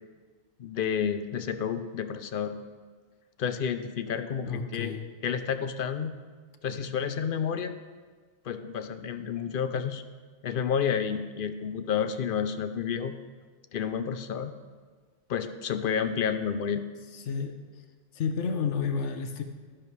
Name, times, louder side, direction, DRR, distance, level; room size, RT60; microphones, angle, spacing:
voice 1, 0.6-2.6 3.4-4.9 5.2-6.2 6.6-7.7 8.4-10.0 10.4-13.1 13.7-14.5 15.3-16.8, left 7 dB, 60° left, 10 dB, 0.7 m, -30 dB
voice 2, 4.5-5.1 17.1-17.8 18.1-19.4, left 5 dB, 75° left, 6 dB, 1.0 m, -31 dB
12.5 x 10.5 x 3.2 m, 1.5 s
omnidirectional pair, 1.2 m